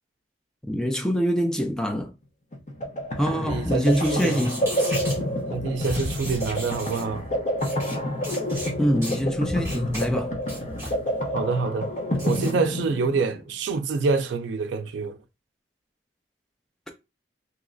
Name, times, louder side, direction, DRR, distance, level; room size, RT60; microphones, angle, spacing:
voice 1, 0.7-2.1 3.2-4.6 8.8-10.3, equal, 5° left, 0.4 m, -24 dB
sound 1, 2.5-13.4, equal, 45° left, 0.8 m, -28 dB
voice 2, 3.3-4.5 5.5-7.3 11.3-11.9 12.2-15.2, right 4 dB, 90° right, 0.4 m, -26 dB
sound 2, 3.8-5.2 5.8-7.1 7.6-8.0 8.2-8.7 9.0-9.2 9.6-10.1 10.4-10.9 12.1-12.5, right 1 dB, 15° right, 1.5 m, -37 dB
3.0 x 2.9 x 2.5 m
head